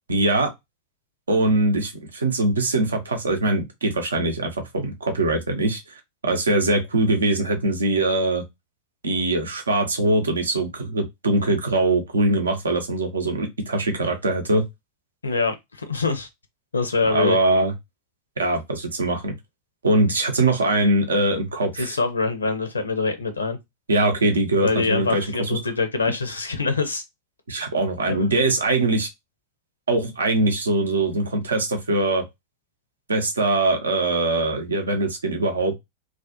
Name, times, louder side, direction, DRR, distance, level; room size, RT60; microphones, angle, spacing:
voice 1, 0.1-0.5 1.3-8.4 9.0-14.6 17.0-17.7 18.4-19.3 19.8-22.0 23.9-25.6 27.5-29.1 29.9-32.2 33.1-35.7, right 2 dB, 70° right, 0.6 m, -22 dB
voice 2, 15.2-16.3 16.7-17.4 21.8-23.6 24.6-27.0 28.1-28.3, left 4 dB, 75° left, 0.5 m, -24 dB
2.3 x 2.1 x 2.6 m
figure-of-eight pair, 90°, 0 cm